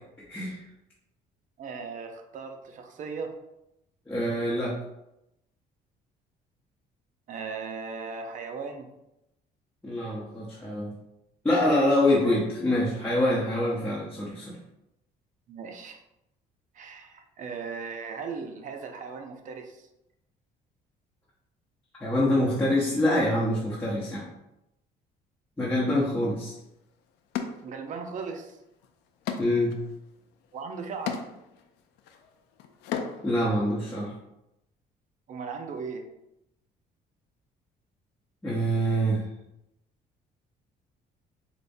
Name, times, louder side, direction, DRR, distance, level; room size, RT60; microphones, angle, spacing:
voice 1, 0.3-0.6 4.1-4.7 9.8-10.9 11.4-14.6 22.0-24.3 25.6-26.5 29.4-29.8 33.2-34.1 38.4-39.3, left 1 dB, 10° left, -7 dB, 0.8 m, -25 dB
voice 2, 1.6-3.3 7.3-8.9 12.0-12.4 15.5-16.0 16.7-19.9 27.6-28.6 30.5-31.2 35.3-36.1, right 5 dB, 50° right, 4 dB, 0.5 m, -37 dB
sound 1, 26.5-26.6 27.3-28.3 28.6-33.4, left 7 dB, 90° left, 0.4 m, -37 dB
4.9 x 2.1 x 2.6 m, 0.88 s
cardioid pair, 110°, 17 cm